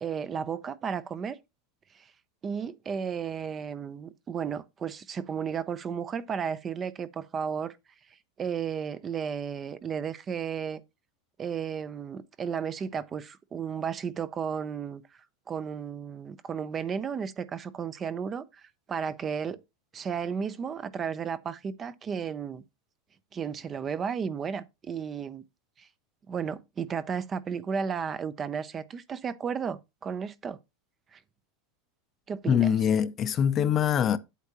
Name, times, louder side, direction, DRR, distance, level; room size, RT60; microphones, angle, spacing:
voice 1, 0.0-1.4 1.9-2.1 2.4-7.8 8.4-10.8 11.4-15.0 15.5-19.6 19.9-22.6 23.3-25.4 25.8-25.9 26.3-30.6 31.1-31.2 32.3-32.7, right 7 dB, 25° right, 0.5 m, -33 dB
voice 2, 32.5-34.2, left 8 dB, 30° left, 0.6 m, -24 dB
8.3 x 8.3 x 2.9 m
supercardioid pair, 145°, 0 cm